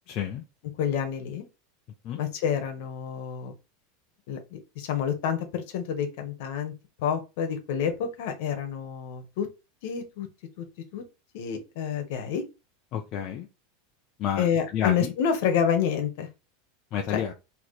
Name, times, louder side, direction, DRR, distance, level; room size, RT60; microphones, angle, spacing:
voice 1, 0.1-0.4 2.0-2.2 12.9-13.5 14.2-14.5 14.7-15.1 16.9-17.3, left 9 dB, 30° left, 0.5 m, -29 dB
voice 2, 0.8-1.4 2.2-3.5 4.3-6.7 7.0-9.5 9.8-10.3 10.6-10.7 10.9-11.0 11.3-12.4 14.4-16.3 17.1-17.2, left 7 dB, 55° left, 1.1 m, -28 dB
4.1 x 2.9 x 3.2 m
supercardioid pair, 175°, 0 cm